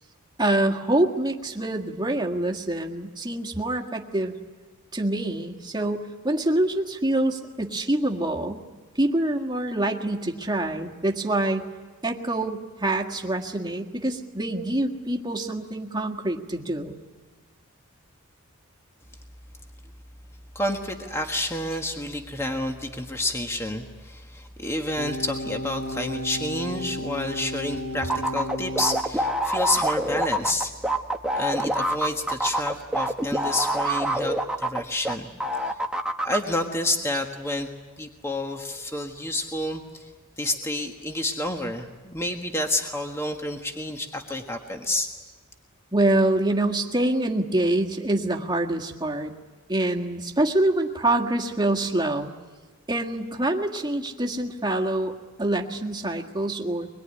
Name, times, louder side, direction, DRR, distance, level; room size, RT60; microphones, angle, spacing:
voice 1, 0.4-4.3 4.9-8.6 8.9-11.6 12.0-17.0 45.9-49.3 49.7-52.3 52.9-56.9, right 1 dB, 20° right, 1 dB, 1.8 m, -25 dB
voice 2, 20.5-30.7 31.3-35.3 36.2-37.7 38.0-40.1 40.4-45.1, left 1 dB, 10° left, 3 dB, 1.5 m, -29 dB
sound 1, 25.0-29.1, equal, 50° left, 1.6 m, -33 dB
sound 2, 28.1-35.1 35.4-36.4, right 1 dB, 5° right, 1.2 m, -25 dB
24.0 x 21.5 x 9.9 m, 1.3 s
head